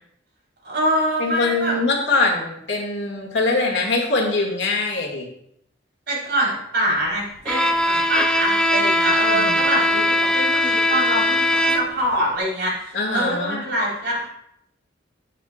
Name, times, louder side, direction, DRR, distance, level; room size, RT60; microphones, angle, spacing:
voice 1, 0.6-1.8 6.1-14.3, right 1 dB, 65° right, -4 dB, 4.3 m, -24 dB
voice 2, 1.2-5.3 9.3-9.6 12.9-13.6, left 3 dB, 70° left, 0 dB, 2.2 m, -22 dB
Bowed string instrument, 7.5-12.1, left 1 dB, 5° left, 0.6 m, -20 dB
11.0 x 9.9 x 2.5 m, 0.73 s
head